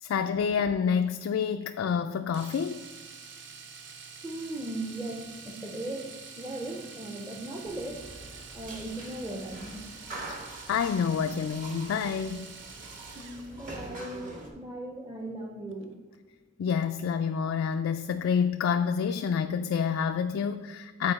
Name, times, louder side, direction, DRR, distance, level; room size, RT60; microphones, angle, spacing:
voice 1, 0.0-2.8 10.7-12.5 16.6-21.1, left 6 dB, 85° left, 7 dB, 0.3 m, -28 dB
Domestic sounds home sounds, 2.3-13.6 15.7-15.8 16.1-16.2, right 5 dB, 65° right, 0.7 m, -47 dB
voice 2, 4.2-8.1 8.5-9.9 13.1-15.9, right 1 dB, 15° right, 1 dB, 0.6 m, -38 dB
sound 1, 7.6-14.5, right 2 dB, 45° right, 1.2 m, -44 dB
8.8 x 4.4 x 4.0 m, 1.4 s
head